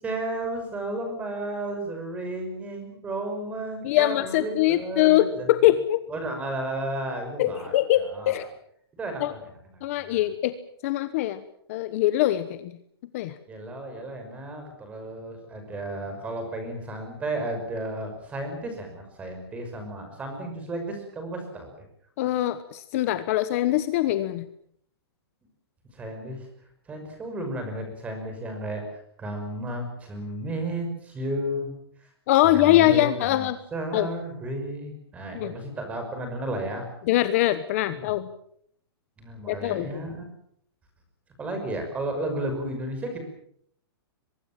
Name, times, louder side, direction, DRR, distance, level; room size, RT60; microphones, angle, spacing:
voice 1, 0.0-5.5 6.1-8.4 9.0-9.5 10.0-10.2 13.5-21.7 25.9-26.5 26.9-28.8 29.2-31.7 32.4-36.9 37.9-38.1 39.2-40.2 41.4-43.2, right 1 dB, 10° right, 5 dB, 5.8 m, -33 dB
voice 2, 3.8-6.0 7.4-8.5 9.2-9.3 9.8-10.5 10.8-11.4 11.7-12.7 13.1-13.3 22.2-24.4 32.3-33.6 33.9-34.1 35.3-35.5 37.1-38.3 39.5-39.9, left 14 dB, 35° left, 12 dB, 1.1 m, -22 dB
23.5 x 23.0 x 7.6 m, 0.67 s
hypercardioid pair, 170°, 13 cm